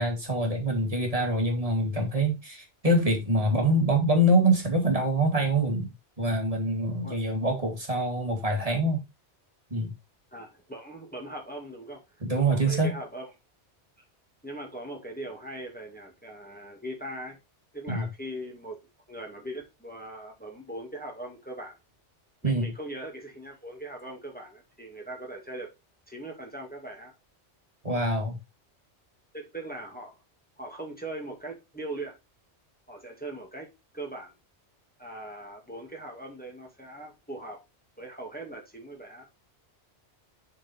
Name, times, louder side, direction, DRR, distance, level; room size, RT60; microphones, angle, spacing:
voice 1, 0.0-5.9 6.2-9.0 9.7-9.9 12.2-12.9 17.9-18.1 22.4-22.7 27.8-28.4, right 1 dB, 30° right, 2.3 m, -25 dB
voice 2, 10.3-12.0 12.3-13.3 14.4-17.4 17.7-18.8 19.1-21.7 22.4-25.7 26.1-27.1 29.3-30.2 30.6-32.1 32.9-33.7 33.9-34.3 35.0-37.6 38.0-39.4, right 1 dB, 10° left, 2.0 m, -40 dB
7.7 x 4.6 x 4.3 m
omnidirectional pair, 1.2 m